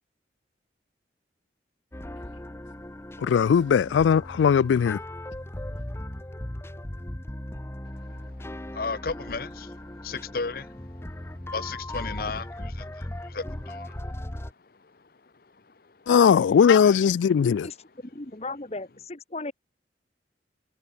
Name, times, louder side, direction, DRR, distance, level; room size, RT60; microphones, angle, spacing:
sound 1, 1.9-14.5, left 1 dB, 15° left, 0.8 m, -38 dB
voice 1, 3.2-5.0 16.1-17.7, left 7 dB, 90° left, 0.3 m, -19 dB
voice 2, 8.7-10.9 11.5-14.0 15.8-15.9 16.6-17.0, left 4 dB, 55° left, 0.8 m, -35 dB
voice 3, 18.1-19.5, left 2 dB, 35° left, 1.4 m, -36 dB
head